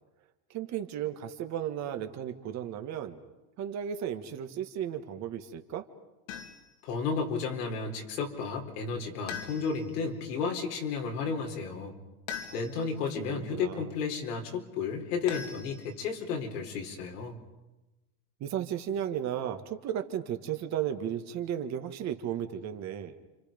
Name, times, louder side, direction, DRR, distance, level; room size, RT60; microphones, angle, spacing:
voice 1, 0.5-3.2 3.6-5.9 12.9-13.9 18.4-23.2, right 10 dB, 35° right, 7 dB, 1.7 m, -34 dB
sound 1, 6.3-6.8 9.3-10.0 12.3-13.0 15.3-16.2, left 8 dB, 65° left, 2.6 m, -41 dB
voice 2, 6.8-11.9 12.5-17.4, left 5 dB, 85° left, 2 dB, 4.4 m, -33 dB
30.0 x 26.5 x 5.3 m, 1.1 s
supercardioid pair, 150°, 46 cm